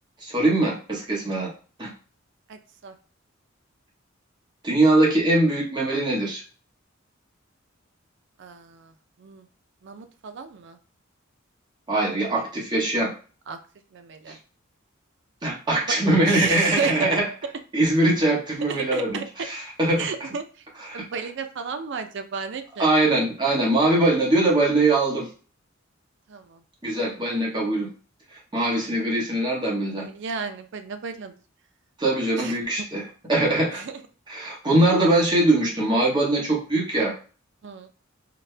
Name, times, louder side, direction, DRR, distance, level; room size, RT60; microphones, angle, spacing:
voice 1, 0.2-1.5 1.8-1.9 4.6-6.4 11.9-13.1 14.3-14.4 15.4-17.3 17.7-20.1 20.9-21.0 22.8-25.3 26.8-27.9 28.5-30.1 32.0-33.0 33.3-33.8 34.3-37.1, right 2 dB, 20° right, -4 dB, 1.0 m, -22 dB
voice 2, 2.5-2.9 8.4-8.9 9.2-9.5 9.8-10.8 13.5-13.6 13.9-14.4 16.2-17.2 18.7-19.5 20.0-20.6 20.9-22.9 26.3-26.6 30.0-31.3 32.4-32.6 33.7-33.9 37.6-37.9, right 5 dB, 60° right, 8 dB, 0.4 m, -33 dB
4.0 x 2.1 x 3.2 m, 0.38 s
head